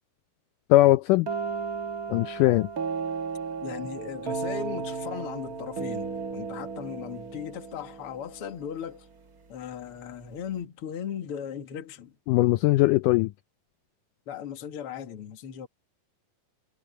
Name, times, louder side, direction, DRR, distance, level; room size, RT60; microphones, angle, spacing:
voice 1, 0.7-1.3 2.1-2.7 12.3-13.3, left 17 dB, 85° left, 1.9 m, -20 dB
sound 1, 1.3-9.0, right 5 dB, 65° right, 0.8 m, -34 dB
voice 2, 3.6-9.1 9.5-12.1 14.3-15.7, left 8 dB, 45° left, 2.4 m, -37 dB
omnidirectional pair, 4.2 m